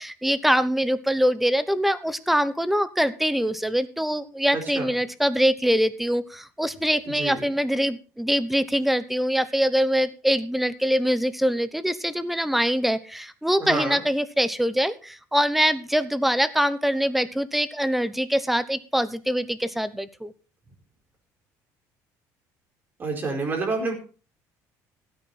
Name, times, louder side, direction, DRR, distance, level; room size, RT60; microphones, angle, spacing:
voice 1, 0.0-20.3, equal, ahead, 14 dB, 0.9 m, -24 dB
voice 2, 4.5-4.9 7.1-7.5 13.6-14.0 23.0-23.9, right 3 dB, 30° right, 2 dB, 4.7 m, -28 dB
16.0 x 9.0 x 4.2 m, 0.36 s
cardioid pair, 140°, 7 cm